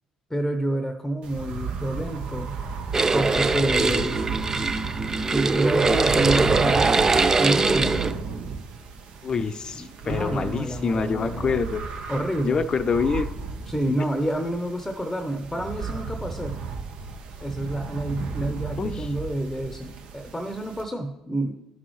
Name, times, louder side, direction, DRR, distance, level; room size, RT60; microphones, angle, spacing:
voice 1, 0.3-2.6 3.1-4.3 5.3-8.0 9.1-9.3 9.7-11.6 12.1-12.6 13.7-16.6 17.4-21.5, right 1 dB, 10° left, 7 dB, 0.9 m, -28 dB
sound 1, 1.2-20.8, right 5 dB, 60° right, 1.1 m, -34 dB
sound 2, 2.9-8.1, right 3 dB, 25° right, 0.5 m, -22 dB
voice 2, 9.2-11.8 12.4-13.3 13.9-14.0 18.4-19.1, left 5 dB, 40° left, 12 dB, 0.6 m, -26 dB
12.5 x 6.1 x 3.2 m, 0.96 s
hypercardioid pair, 55°, 2 cm